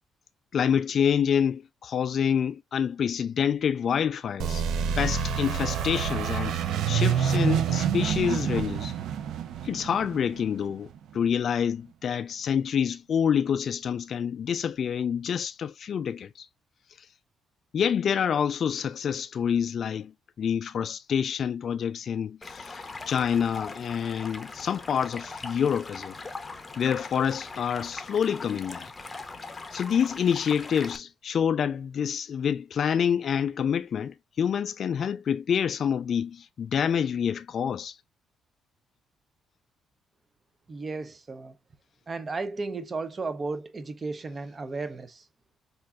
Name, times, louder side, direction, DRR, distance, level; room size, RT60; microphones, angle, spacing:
voice 1, 0.5-4.7 5.0-8.9 9.6-16.5 17.7-20.1 20.4-26.1 26.8-28.9 29.7-38.0, left 8 dB, 55° left, 0.3 m, -27 dB
sound 1, 4.4-11.0, right 8 dB, 80° right, 0.5 m, -27 dB
Stream, 22.4-31.0, left 3 dB, 20° left, 0.7 m, -41 dB
voice 2, 40.7-41.6 42.1-45.3, right 3 dB, 30° right, 0.6 m, -34 dB
5.2 x 2.5 x 2.3 m
cardioid pair, 100°, 0 cm